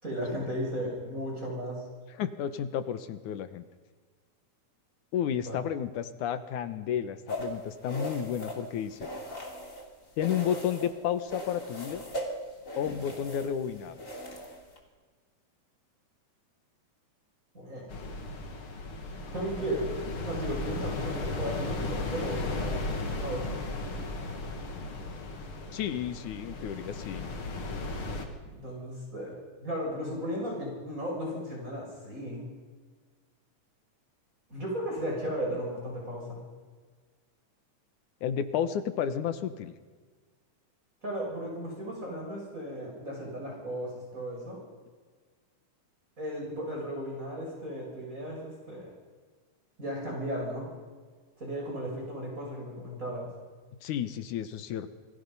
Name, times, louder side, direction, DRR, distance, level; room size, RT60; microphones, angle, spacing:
voice 1, 0.0-1.8 5.4-5.6 17.5-17.9 19.3-19.9 20.1-23.6 28.4-29.4 29.6-32.4 34.5-36.4 41.0-44.6 46.2-48.9 49.8-50.7 51.4-53.3, equal, 25° right, -2 dB, 6.9 m, -35 dB
voice 2, 2.1-3.7 5.1-9.1 10.2-12.0 12.8-14.0 25.7-27.3 38.2-39.7 53.8-54.9, left 9 dB, 75° left, 10 dB, 2.6 m, -32 dB
sound 1, 7.3-9.9 10.2-10.9 11.3-14.8, equal, 25° left, 3.2 m, -39 dB
sound 2, 17.9-28.3, left 2 dB, 45° left, 2.8 m, -35 dB
28.5 x 22.5 x 5.5 m, 1.5 s
omnidirectional pair, 3.6 m